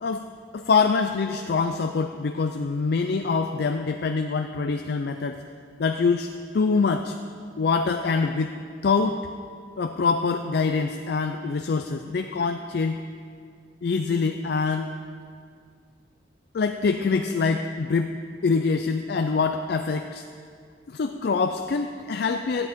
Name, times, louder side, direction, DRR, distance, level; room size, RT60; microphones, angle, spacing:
voice 1, 0.5-5.4 5.8-7.2 7.6-8.5 8.8-9.2 9.8-13.0 13.8-14.9 16.5-18.1 18.4-20.2 20.9-22.7, left 4 dB, 60° left, 6 dB, 0.4 m, -24 dB
13.5 x 10.5 x 3.6 m, 2.1 s
head